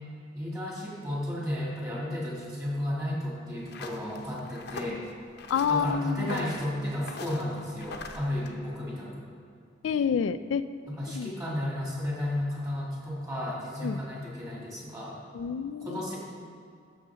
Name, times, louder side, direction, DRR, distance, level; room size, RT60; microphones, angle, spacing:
voice 1, 0.3-5.0 5.7-9.3 10.9-15.2 15.8-16.1, left 1 dB, 20° right, -5 dB, 2.4 m, -33 dB
sound 1, 3.6-8.5, left 3 dB, 60° left, 0.8 m, -42 dB
voice 2, 5.5-6.5 9.8-10.6 11.1-11.3 13.8-14.0 15.3-16.0, left 7 dB, 85° left, 13 dB, 0.3 m, -28 dB
13.0 x 6.4 x 3.7 m, 2.4 s
head